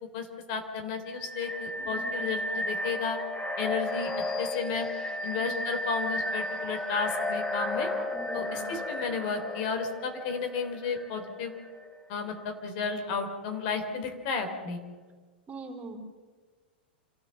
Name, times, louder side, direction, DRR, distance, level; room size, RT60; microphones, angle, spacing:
voice 1, 0.1-3.2 3.6-4.1 4.4-4.9 5.2-7.9 8.3-11.6 12.1-14.8, left 5 dB, 55° left, 6 dB, 3.3 m, -33 dB
sound 1, 1.1-11.8, left 1 dB, 15° left, 2.7 m, -34 dB
voice 2, 1.8-2.3 5.4-5.6 8.1-8.7 15.5-16.0, right 3 dB, 25° right, 2 dB, 4.1 m, -43 dB
27.5 x 13.5 x 7.4 m, 1.5 s
hypercardioid pair, 100°, 6 cm